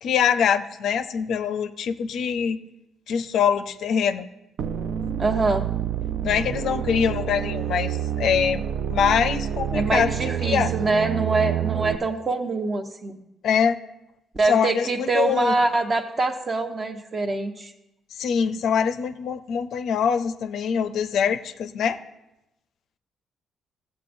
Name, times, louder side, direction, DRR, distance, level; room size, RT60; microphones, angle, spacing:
voice 1, 0.0-2.6 3.1-4.3 6.2-8.6 8.9-10.1 10.4-10.7 13.4-13.8 14.4-15.5 18.2-22.0, left 7 dB, 70° left, 11 dB, 0.4 m, -23 dB
sound 1, 4.6-12.0, right 10 dB, 70° right, 0.3 m, -28 dB
voice 2, 5.2-5.7 9.7-13.2 14.3-17.7, right 3 dB, 35° right, 6 dB, 0.9 m, -24 dB
14.5 x 7.9 x 2.6 m, 0.91 s
cardioid pair, 90°, 0 cm